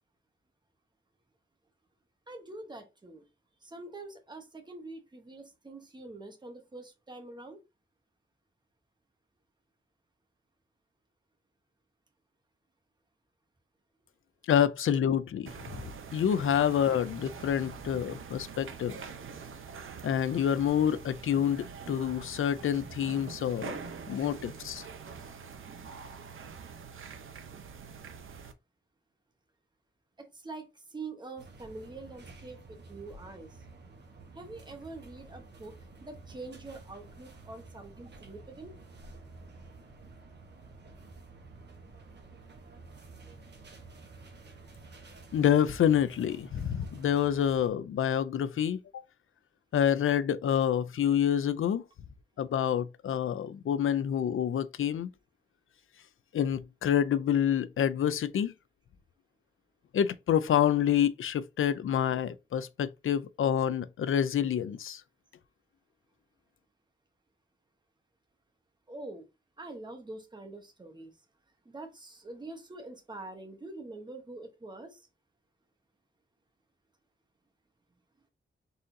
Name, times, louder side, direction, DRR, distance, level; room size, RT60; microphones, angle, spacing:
voice 1, 2.3-3.3 3.6-7.6 30.2-33.6 34.3-35.8 36.0-38.8 68.9-69.3 69.6-71.2 71.6-75.1, right 2 dB, 20° right, 1.0 m, -45 dB
voice 2, 14.5-15.8 16.1-19.0 20.0-23.8 24.1-24.8 45.3-49.0 49.7-51.8 52.4-55.1 56.3-58.5 59.9-65.0, left 9 dB, 90° left, 0.4 m, -27 dB
sound 1, 15.5-28.5, right 6 dB, 80° right, 0.7 m, -44 dB
sound 2, 31.4-47.7, right 3 dB, 60° right, 1.1 m, -51 dB
4.2 x 3.7 x 2.6 m
wide cardioid pair, 160°, 20 cm